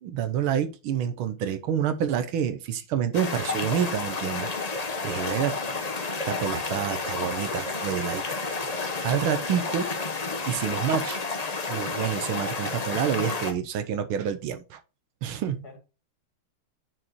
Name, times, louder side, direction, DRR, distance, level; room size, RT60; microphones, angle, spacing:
voice 1, 0.0-4.5 5.0-5.6 6.3-8.2 9.0-9.9 10.4-11.2 11.7-14.8 15.2-15.6, right 9 dB, 75° right, 1.6 m, -28 dB
sound 1, 3.1-13.5, left 3 dB, 85° left, 0.3 m, -31 dB
voice 2, 4.9-6.0 15.5-15.8, left 2 dB, 45° left, 2.9 m, -48 dB
9.7 x 4.7 x 3.0 m
omnidirectional pair, 2.4 m